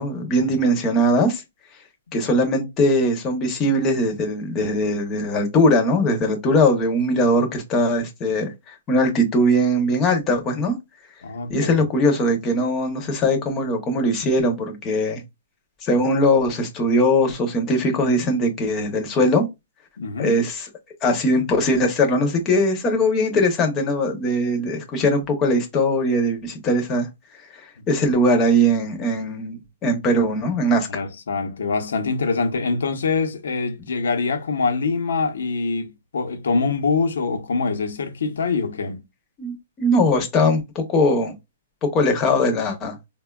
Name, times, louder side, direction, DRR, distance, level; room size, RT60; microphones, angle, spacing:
voice 1, 0.0-1.4 2.1-10.7 11.5-15.2 15.8-19.5 20.2-20.6 21.0-27.1 27.9-31.0 39.4-41.3 41.8-43.0, left 1 dB, 15° left, 0.6 m, -20 dB
voice 2, 11.2-11.9 20.0-20.4 27.8-27.9 30.9-39.0, left 4 dB, 85° left, 0.7 m, -24 dB
4.2 x 2.2 x 2.2 m
hypercardioid pair, 175°, 0 cm